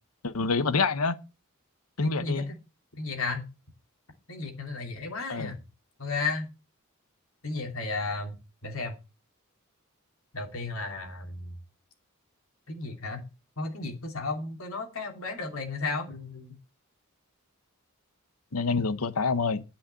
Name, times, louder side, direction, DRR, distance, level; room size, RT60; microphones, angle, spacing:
voice 1, 0.2-1.2 2.0-2.5 5.3-5.5 18.5-19.6, left 4 dB, 85° left, 1.0 m, -27 dB
voice 2, 2.0-2.6 3.0-3.5 4.3-5.6 6.0-6.5 7.4-8.4 8.6-9.0 10.3-11.5 12.7-13.3 13.6-16.6, left 3 dB, 70° left, 2.8 m, -34 dB
10.0 x 5.8 x 7.4 m
head